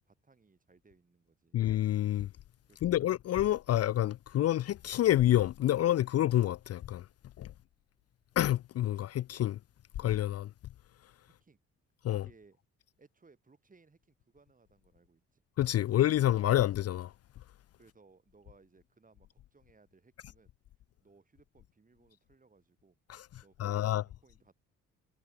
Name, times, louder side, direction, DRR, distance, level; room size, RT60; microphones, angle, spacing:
voice 1, 0.0-1.6 2.7-3.0 7.5-7.6 11.3-11.6 12.1-12.6 13.0-15.4 17.8-20.5 21.0-23.0 23.4-24.5, right 4 dB, 25° right, 6.8 m, -64 dB
voice 2, 1.5-2.3 2.8-7.0 7.4-7.5 8.4-9.6 10.0-10.5 12.0-12.3 15.6-17.1 23.1-23.3 23.6-24.0, left 13 dB, 55° left, 0.5 m, -28 dB
cardioid pair, 90°, 30 cm